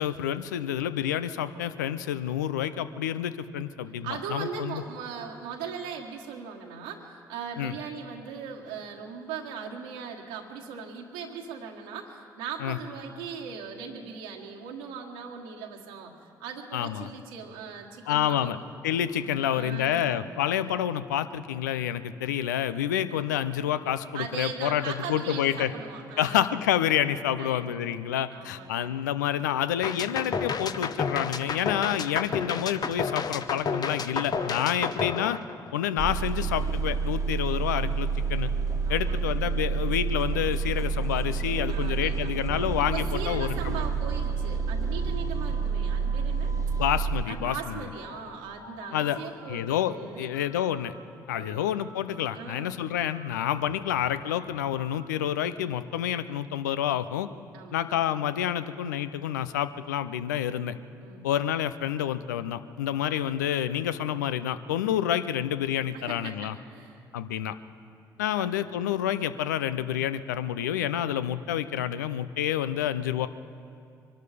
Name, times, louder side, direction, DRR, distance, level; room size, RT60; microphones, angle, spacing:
voice 1, 0.0-4.8 7.6-7.7 12.6-12.8 16.7-17.1 18.1-18.6 18.8-25.7 26.2-35.4 35.7-38.5 38.9-43.9 46.8-47.5 48.9-49.2 49.5-50.9 51.3-57.3 57.7-60.8 61.2-66.6 67.1-67.5 68.2-73.3, left 10 dB, 85° left, 13 dB, 0.5 m, -28 dB
voice 2, 4.0-18.5 19.2-20.1 22.9-23.0 24.1-26.4 27.4-27.8 28.3-28.9 38.8-39.2 41.7-42.3 42.9-46.5 47.3-50.3 51.3-51.7 52.3-52.7 57.5-57.9 61.0-61.3 65.9-67.0 68.3-68.5, right 6 dB, 80° right, -1 dB, 1.5 m, -39 dB
sound 1, 29.8-36.0, left 5 dB, 45° left, 0.9 m, -31 dB
sound 2, 36.0-47.2, right 5 dB, 35° right, 1.3 m, -28 dB
sound 3, 43.2-45.7 45.9-47.0 47.4-48.3 48.6-49.7 50.0-51.0 51.3-52.6 53.0-55.1, equal, 70° left, 1.9 m, -50 dB
24.0 x 12.0 x 5.0 m, 2.4 s
hypercardioid pair, 50°, 9 cm